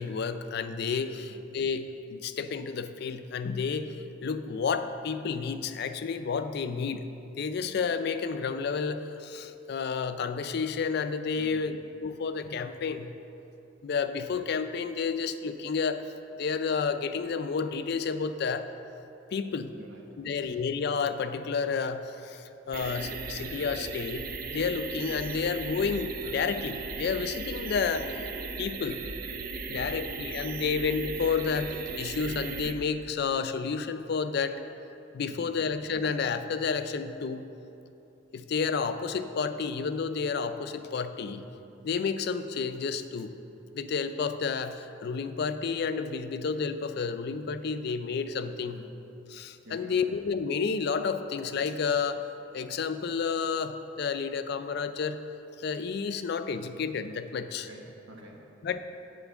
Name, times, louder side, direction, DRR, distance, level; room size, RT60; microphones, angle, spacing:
voice 1, 0.0-7.1 7.4-13.1 13.8-16.0 16.4-18.7 19.3-19.7 20.2-28.3 28.6-29.0 29.7-34.6 35.1-37.4 38.3-41.5 41.8-43.3 43.7-48.8 49.3-52.2 52.5-55.2 55.6-57.7 58.6-58.8, left 5 dB, 55° left, 10 dB, 0.4 m, -31 dB
voice 2, 19.7-20.5 29.7-30.1 35.2-35.5 48.6-49.0 49.6-50.1 57.7-58.5, right 1 dB, 70° right, 0 dB, 1.2 m, -50 dB
sound 1, 22.7-32.7, right 4 dB, 45° right, 0.5 m, -37 dB
8.3 x 4.4 x 6.9 m, 2.9 s
head